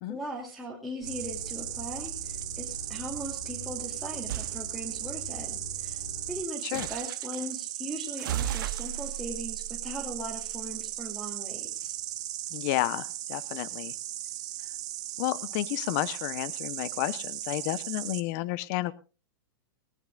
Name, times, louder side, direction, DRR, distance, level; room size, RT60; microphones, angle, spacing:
voice 1, 0.1-12.0, right 1 dB, ahead, -4 dB, 2.9 m, -39 dB
sound 1, 1.0-6.4, left 1 dB, 80° left, 7.2 m, -44 dB
Insect, 1.0-18.2, right 14 dB, 35° right, 1.5 m, -37 dB
sound 2, 4.3-4.6 6.7-7.5 8.2-10.8, right 11 dB, 70° right, 0.9 m, -36 dB
voice 2, 12.5-13.9 15.2-18.9, left 16 dB, 50° left, 17 dB, 0.9 m, -31 dB
19.5 x 18.5 x 2.5 m, 0.33 s
hypercardioid pair, 140°, 12 cm